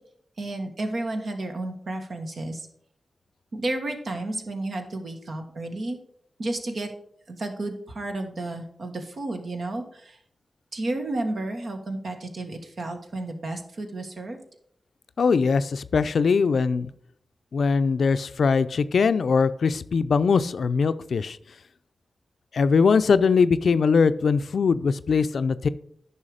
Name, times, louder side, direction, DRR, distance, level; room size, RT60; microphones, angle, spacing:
voice 1, 0.4-2.7 3.5-6.0 6.4-6.9 7.3-10.2 10.7-14.4, right 2 dB, 70° right, 1.5 m, -32 dB
voice 2, 15.2-16.9 17.5-21.4 22.5-25.7, left 5 dB, 75° left, 0.4 m, -21 dB
9.8 x 5.6 x 5.0 m
cardioid pair, 50°, 0 cm